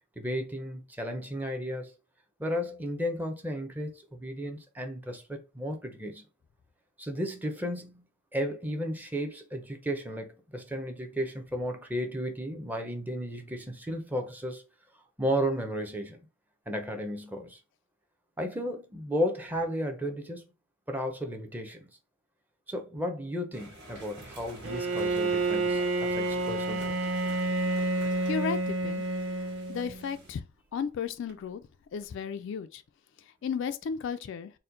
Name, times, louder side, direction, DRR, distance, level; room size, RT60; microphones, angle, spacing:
voice 1, 0.2-1.9 2.4-6.2 7.0-8.0 8.3-14.6 15.2-16.2 16.7-17.6 18.4-20.4 20.9-21.9 22.7-27.0, equal, 10° right, 0.6 m, -34 dB
sound 1, 23.5-30.3, right 1 dB, 55° right, 1.4 m, -48 dB
Bowed string instrument, 24.6-30.1, right 2 dB, 80° right, 0.5 m, -29 dB
voice 2, 28.3-29.0 29.4-31.6 31.9-32.8 33.2-34.5, left 6 dB, 65° left, 0.3 m, -35 dB
4.2 x 2.1 x 3.7 m
head